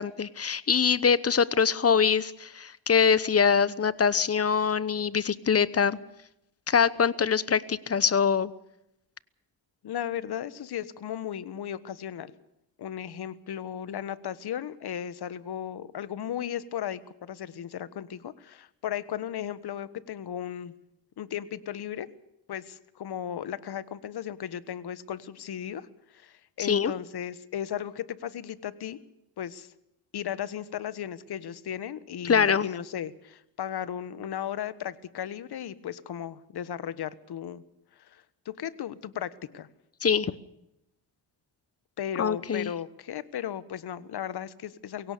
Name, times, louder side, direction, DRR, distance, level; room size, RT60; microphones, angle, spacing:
voice 1, 0.0-6.0 6.7-8.5 26.6-26.9 32.2-32.7 40.0-40.3 42.2-42.7, left 6 dB, 35° left, 17 dB, 1.0 m, -24 dB
voice 2, 9.8-12.3 12.8-20.7 21.2-22.1 22.5-25.9 26.1-29.0 29.4-29.7 30.1-37.6 38.0-39.7 42.0-45.1, left 10 dB, 60° left, 15 dB, 1.4 m, -36 dB
23.0 x 17.5 x 6.8 m, 0.84 s
cardioid pair, 90°, 43 cm